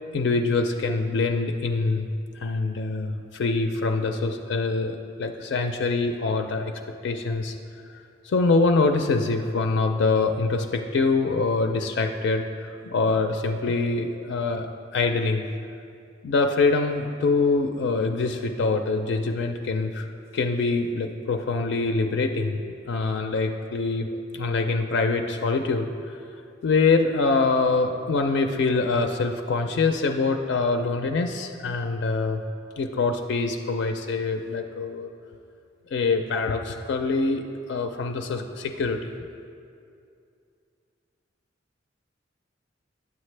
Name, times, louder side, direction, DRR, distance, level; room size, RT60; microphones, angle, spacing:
voice 1, 0.1-2.1 2.4-6.7 7.0-7.6 8.2-14.7 14.9-15.5 16.2-20.1 20.3-22.6 22.9-24.1 24.3-25.9 26.6-32.4 32.8-35.1 35.9-39.1, left 3 dB, 65° left, 5 dB, 0.4 m, -24 dB
9.5 x 7.3 x 3.2 m, 2.5 s
head